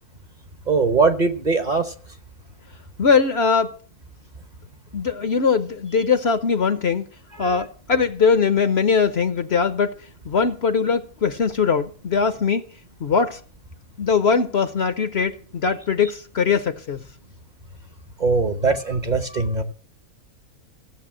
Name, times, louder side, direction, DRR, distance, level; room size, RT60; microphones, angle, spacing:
voice 1, 0.7-1.9 7.4-7.5 18.2-19.6, right 4 dB, 35° right, 1.0 m, -21 dB
voice 2, 3.0-3.7 4.9-7.0 7.4-10.0 10.3-12.6 13.0-13.4 14.0-17.0, left 5 dB, 50° left, 1.0 m, -21 dB
15.5 x 7.2 x 7.4 m
omnidirectional pair, 1.5 m